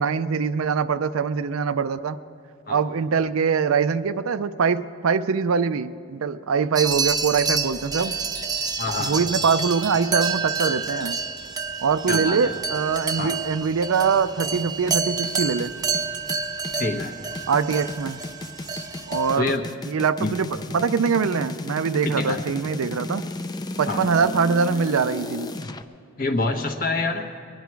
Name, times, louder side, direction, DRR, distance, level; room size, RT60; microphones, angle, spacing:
voice 1, 0.0-2.2 2.7-8.2 9.0-11.2 11.8-15.7 17.5-18.2 19.1-19.5 19.9-23.2 23.8-25.5, right 5 dB, 85° right, 13 dB, 0.5 m, -23 dB
sound 1, 6.8-19.4, right 4 dB, 20° right, 0.7 m, -28 dB
voice 2, 8.8-9.2 12.1-12.6 13.2-13.4 16.8-17.2 19.4-19.7 20.2-20.3 22.0-22.4 23.9-24.0 26.2-27.3, left 3 dB, 40° left, 4 dB, 1.1 m, -26 dB
sound 2, 14.5-25.8, left 2 dB, 20° left, 0.4 m, -34 dB
22.5 x 10.5 x 4.6 m, 2.5 s
head